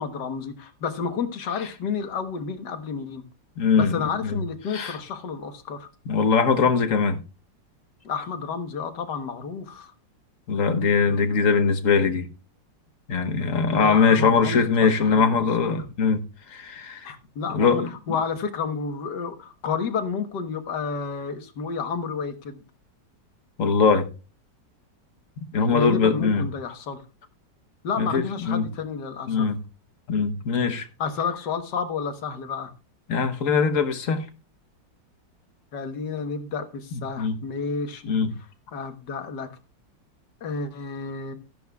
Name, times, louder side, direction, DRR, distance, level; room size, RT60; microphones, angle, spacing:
voice 1, 0.0-3.2 3.8-5.9 8.0-9.9 13.5-15.9 17.1-17.8 18.1-22.6 25.6-27.0 27.8-29.5 31.0-32.7 35.7-38.0 38.7-39.5 40.4-41.3, left 5 dB, 70° left, 1.9 m, -31 dB
voice 2, 3.6-4.4 4.7-5.0 6.1-7.2 10.5-12.3 13.1-16.2 16.5-17.1 17.5-17.9 23.6-24.1 25.5-26.5 28.0-28.7 29.3-29.6 30.1-30.9 33.1-34.2 37.2-37.4 38.1-38.3, left 5 dB, 50° left, 1.3 m, -21 dB
14.0 x 11.0 x 2.3 m
omnidirectional pair, 2.0 m